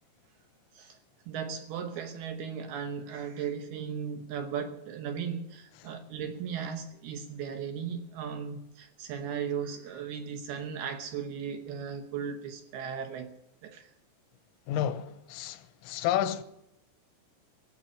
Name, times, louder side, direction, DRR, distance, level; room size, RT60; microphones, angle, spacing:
voice 1, 1.3-13.3 13.6-13.9, right 7 dB, 75° right, 2.3 m, -36 dB
voice 2, 14.7-16.4, left 10 dB, 85° left, 3.4 m, -30 dB
16.5 x 8.8 x 8.8 m
omnidirectional pair, 6.0 m